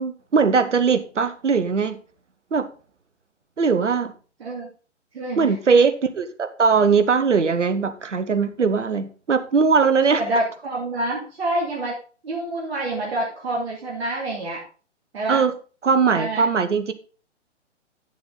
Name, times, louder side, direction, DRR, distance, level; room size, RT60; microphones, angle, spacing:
voice 1, 0.0-2.0 2.5-2.7 3.6-4.1 5.4-10.2 15.3-15.5 15.8-16.9, right 5 dB, 75° right, 11 dB, 1.1 m, -20 dB
voice 2, 5.1-5.5 10.2-12.0 12.2-14.6 15.1-15.4 16.1-16.4, right 1 dB, 55° right, -3 dB, 2.4 m, -27 dB
8.9 x 7.0 x 3.9 m, 0.38 s
figure-of-eight pair, 125°, 36 cm